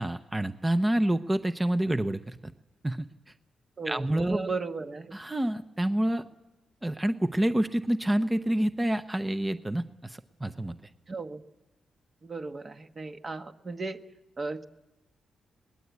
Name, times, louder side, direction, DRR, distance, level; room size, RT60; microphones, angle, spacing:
voice 1, 0.0-2.5 2.8-3.1 3.9-4.5 5.1-6.2 6.8-10.8, right 1 dB, 15° right, 11 dB, 0.7 m, -28 dB
voice 2, 3.8-5.1 11.1-11.4 12.2-14.0 14.4-14.6, right 3 dB, 35° right, 7 dB, 1.2 m, -35 dB
22.0 x 20.0 x 8.3 m, 1.0 s
cardioid pair, 110°, 0 cm